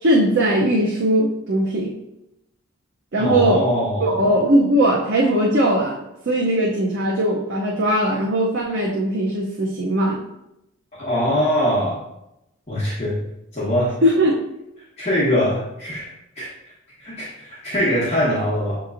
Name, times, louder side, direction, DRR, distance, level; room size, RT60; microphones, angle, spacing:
voice 1, 0.0-2.0 3.1-3.7 4.0-6.0 6.3-10.2 14.0-14.4, right 1 dB, 55° right, -3 dB, 0.5 m, -19 dB
voice 2, 3.2-4.2 11.0-12.0 12.7-13.2 13.5-13.9 15.0-16.5 17.0-18.8, equal, 30° left, -9 dB, 1.0 m, -22 dB
6.7 x 2.9 x 2.5 m, 0.86 s
head